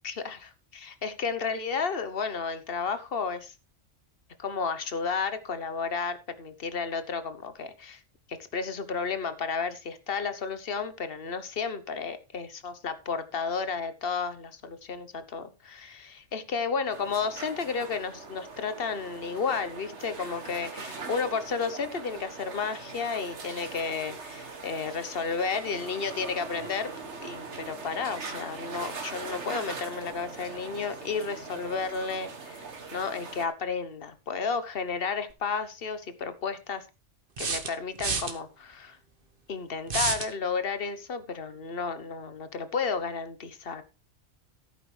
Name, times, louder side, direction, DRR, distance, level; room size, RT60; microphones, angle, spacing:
voice 1, 0.0-3.5 4.4-8.0 8.3-26.9 27.2-36.8 37.4-39.0 39.5-43.8, left 5 dB, 50° left, 11 dB, 1.2 m, -32 dB
sound 1, 16.9-33.5, right 4 dB, 60° right, 1.8 m, -41 dB
sound 2, 35.3-35.4 37.4-38.3 39.9-40.3, right 4 dB, 45° right, 1.4 m, -29 dB
15.0 x 8.7 x 3.3 m, 0.27 s
omnidirectional pair, 1.3 m